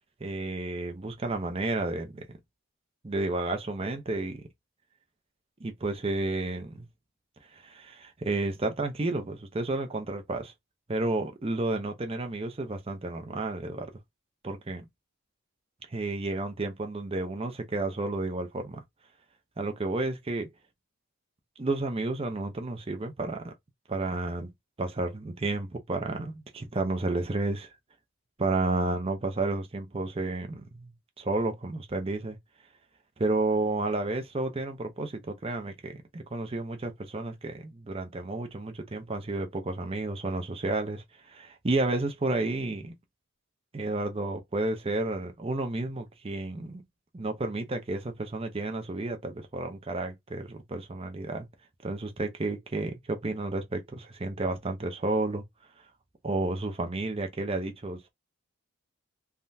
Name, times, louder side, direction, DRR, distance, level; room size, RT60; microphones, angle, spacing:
voice 1, 0.2-2.3 3.0-4.4 5.6-6.9 7.6-10.5 10.9-13.9 14.4-14.9 15.9-18.8 19.6-20.5 21.6-23.5 23.9-24.5 24.8-27.7 28.4-30.9 31.2-32.4 33.2-42.9 43.7-46.8 47.1-51.5 51.8-55.4 56.2-58.1, right 2 dB, 25° right, 0.5 m, -31 dB
3.5 x 2.2 x 2.6 m
head